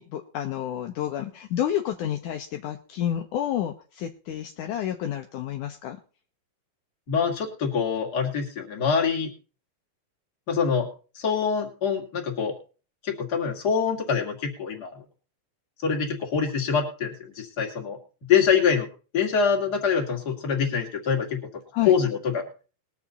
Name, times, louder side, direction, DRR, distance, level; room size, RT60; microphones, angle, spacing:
voice 1, 0.0-6.0 21.7-21.9, left 11 dB, 70° left, 5 dB, 2.2 m, -30 dB
voice 2, 7.1-9.3 10.5-10.9 11.1-12.6 13.0-15.0 15.8-18.0 18.3-18.9 19.1-21.4 21.9-22.5, left 6 dB, 30° left, 2 dB, 2.7 m, -25 dB
21.0 x 7.2 x 4.1 m, 0.36 s
omnidirectional pair, 3.9 m